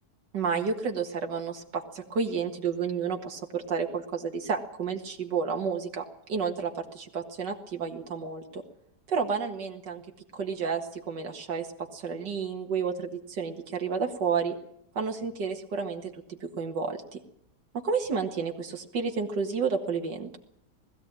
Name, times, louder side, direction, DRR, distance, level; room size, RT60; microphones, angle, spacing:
voice 1, 0.3-8.6 9.1-10.0 10.3-14.6 15.0-17.2 17.7-20.4, right 5 dB, 90° right, 3 dB, 2.4 m, -31 dB
20.5 x 14.5 x 8.9 m, 0.73 s
omnidirectional pair, 1.8 m